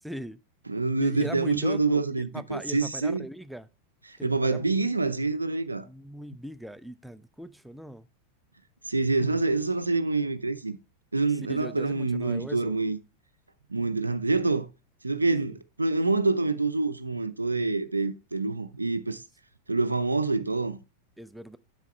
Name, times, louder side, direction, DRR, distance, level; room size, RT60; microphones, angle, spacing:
voice 1, 0.0-0.4 1.0-3.7 4.2-4.8 5.8-8.1 11.5-12.8 15.5-15.6 21.2-21.6, equal, ahead, 0.4 m, -40 dB
voice 2, 0.7-3.3 4.1-5.9 8.9-10.8 11.1-13.0 13.7-14.7 15.0-19.2 19.7-20.8, right 3 dB, 80° right, 0.5 m, -26 dB
8.2 x 6.3 x 3.2 m
figure-of-eight pair, 90°, 0 cm